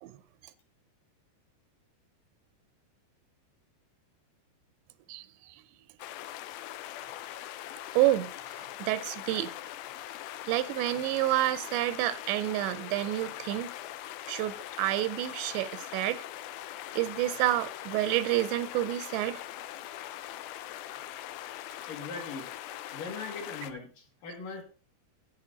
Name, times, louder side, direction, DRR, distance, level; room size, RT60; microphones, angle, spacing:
voice 1, 5.1-5.6 8.0-8.3 8.8-9.5 10.5-13.7 14.3-16.2 17.0-19.4, right 15 dB, 85° right, 2.8 m, -29 dB
sound 1, 6.0-23.7, left 13 dB, 80° left, 2.7 m, -42 dB
voice 2, 21.8-22.5 22.9-24.6, left 4 dB, 55° left, 3.3 m, -40 dB
10.5 x 8.8 x 3.9 m
omnidirectional pair, 5.0 m